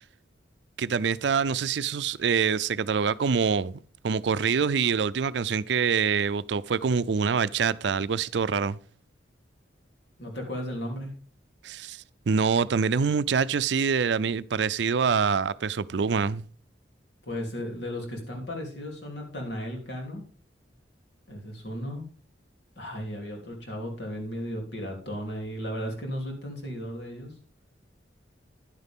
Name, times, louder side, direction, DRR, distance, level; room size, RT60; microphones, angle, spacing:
voice 1, 0.8-8.8 11.6-16.4, right 6 dB, 70° right, 0.4 m, -25 dB
voice 2, 10.2-11.1 17.2-20.2 21.3-22.0 22.8-27.3, equal, 70° left, 3.3 m, -35 dB
10.5 x 9.7 x 3.6 m
head